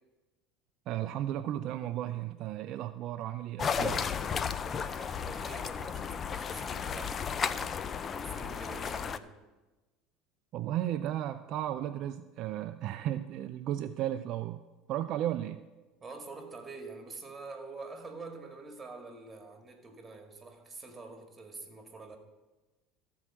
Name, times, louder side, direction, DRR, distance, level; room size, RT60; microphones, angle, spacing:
voice 1, 0.9-4.0 10.5-14.6 14.9-15.6, right 12 dB, 55° right, 9 dB, 0.4 m, -34 dB
sound 1, 3.6-9.2, left 6 dB, 35° left, 0.5 m, -34 dB
voice 2, 4.6-7.8 8.1-9.3 16.0-22.2, right 3 dB, 20° right, 4 dB, 2.1 m, -46 dB
14.0 x 4.7 x 7.5 m, 1.2 s
supercardioid pair, 90°, 0 cm